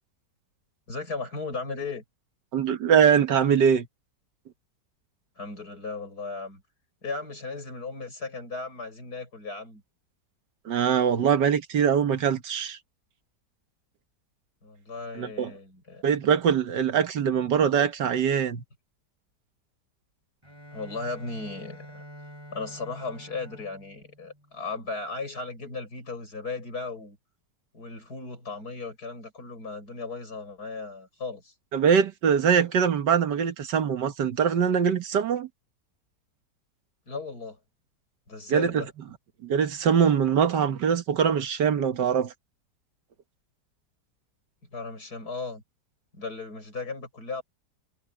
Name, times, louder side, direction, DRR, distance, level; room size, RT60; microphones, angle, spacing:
voice 1, 0.9-2.0 5.4-6.6 7.0-9.8 14.6-16.0 20.7-22.0 22.5-27.2 27.7-31.5 37.1-37.6 38.3-38.9 44.7-45.6 46.1-47.4, left 3 dB, 60° left, 6.8 m, -36 dB
voice 2, 2.5-3.9 10.7-12.8 15.2-15.5 16.0-18.6 31.7-35.5 38.5-38.8 39.4-42.3, right 7 dB, 80° right, 1.9 m, -23 dB
Bowed string instrument, 20.4-25.2, equal, 15° right, 5.9 m, -48 dB
omnidirectional pair, 1.8 m